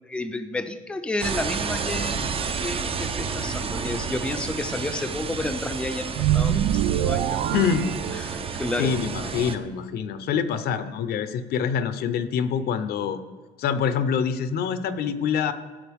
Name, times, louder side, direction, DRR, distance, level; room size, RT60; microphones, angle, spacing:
voice 1, 0.0-2.3 2.6-7.5 8.1-8.9, left 2 dB, 5° left, 7 dB, 0.6 m, -31 dB
sound 1, 1.2-9.6, right 5 dB, 35° right, 0.7 m, -31 dB
sound 2, 6.1-8.7, right 11 dB, 80° right, 0.5 m, -25 dB
voice 2, 7.5-7.9 8.2-8.3 8.8-13.2 13.6-15.5, left 7 dB, 70° left, 11 dB, 0.7 m, -25 dB
14.0 x 7.5 x 3.5 m, 1.4 s
cardioid pair, 110°, 17 cm